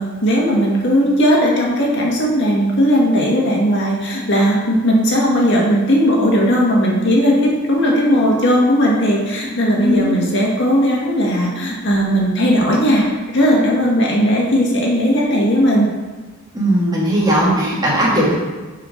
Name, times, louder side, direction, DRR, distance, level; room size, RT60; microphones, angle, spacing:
voice 1, 0.0-13.1 13.3-15.9, equal, 60° left, -3 dB, 1.9 m, -16 dB
voice 2, 9.8-10.1 16.5-18.3, equal, 20° right, -6 dB, 2.4 m, -17 dB
12.0 x 4.8 x 3.9 m, 1.3 s
head